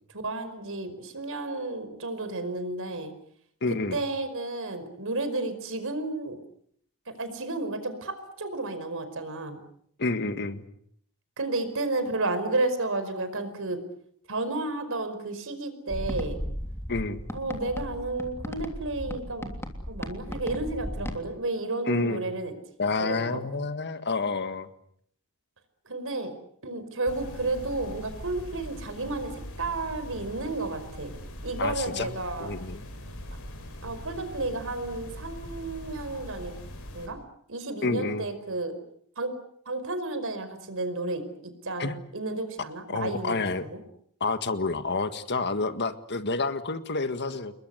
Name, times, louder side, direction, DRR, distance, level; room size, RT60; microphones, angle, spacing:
voice 1, 0.1-3.1 3.9-6.4 7.1-9.6 11.4-13.8 14.3-16.4 17.3-19.6 19.9-22.5 23.0-23.4 25.8-26.3 26.6-31.1 31.4-32.5 33.8-36.5 36.9-37.2 37.5-38.8 39.2-39.3 39.6-43.8, right 2 dB, 65° right, 10 dB, 5.1 m, -32 dB
voice 2, 3.6-4.0 10.0-10.6 16.9-17.2 21.9-22.3 22.8-24.7 31.6-32.1 32.4-32.9 37.8-38.3 41.8-42.0 42.9-43.7 44.2-47.5, left 3 dB, 50° left, 10 dB, 1.8 m, -29 dB
sound 1, 15.9-21.2, equal, 10° left, 3.1 m, -36 dB
sound 2, 27.1-37.1, equal, 65° left, 6.6 m, -41 dB
29.5 x 21.5 x 8.1 m, 0.66 s
head